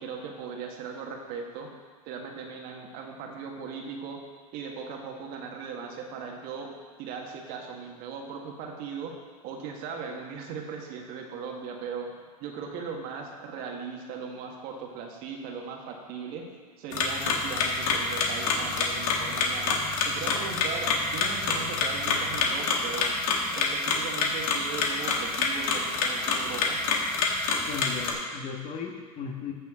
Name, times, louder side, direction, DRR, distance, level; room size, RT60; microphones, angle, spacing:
voice 1, 0.0-1.7 2.1-4.2 4.5-6.7 7.0-9.1 9.4-12.1 12.4-16.5 16.8-23.2 23.5-26.8, right 5 dB, 50° right, 1 dB, 1.6 m, -38 dB
sound 1, 16.9-28.1, left 4 dB, 65° left, 1.6 m, -27 dB
voice 2, 27.7-29.5, left 6 dB, 35° left, 1 dB, 1.5 m, -36 dB
14.0 x 6.5 x 3.7 m, 1.5 s
hypercardioid pair, 105°, 19 cm